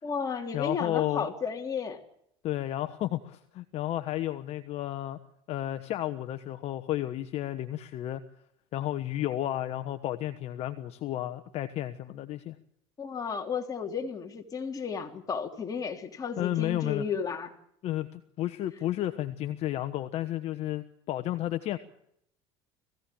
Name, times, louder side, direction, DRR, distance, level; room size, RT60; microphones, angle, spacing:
voice 1, 0.0-2.0 13.0-17.5, left 6 dB, 30° left, 3 dB, 3.3 m, -33 dB
voice 2, 0.5-1.3 2.4-5.2 5.5-8.2 8.7-12.6 16.4-17.0 17.8-21.8, left 13 dB, 55° left, 10 dB, 1.2 m, -32 dB
20.5 x 16.0 x 8.8 m, 0.73 s
supercardioid pair, 100°, 13 cm